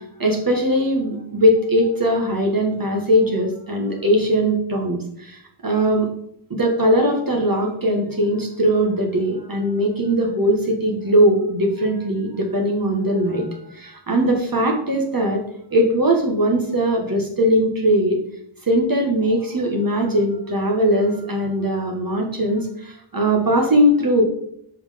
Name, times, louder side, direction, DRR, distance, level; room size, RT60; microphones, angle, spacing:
voice 1, 0.2-5.0 5.6-6.1 6.5-13.5 13.8-15.4 15.7-18.2 18.7-24.2, equal, 45° right, 1 dB, 1.5 m, -20 dB
5.6 x 4.6 x 5.1 m, 0.71 s
wide cardioid pair, 70°, 49 cm